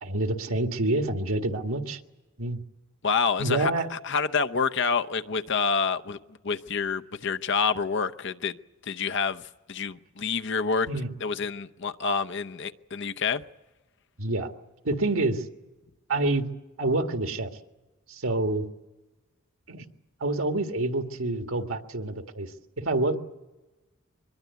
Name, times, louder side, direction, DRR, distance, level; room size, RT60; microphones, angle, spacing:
voice 1, 0.0-2.0 2.4-2.6 3.4-3.9 10.9-11.1 14.2-14.5 14.8-15.4 16.1-16.5 16.8-17.5 18.1-18.7 19.7-19.8 20.2-23.2, right 2 dB, 85° right, 1.8 m, -27 dB
voice 2, 3.0-6.2 6.4-8.6 8.9-10.9 11.2-13.4, left 5 dB, 60° left, 0.8 m, -28 dB
24.0 x 21.5 x 8.3 m
head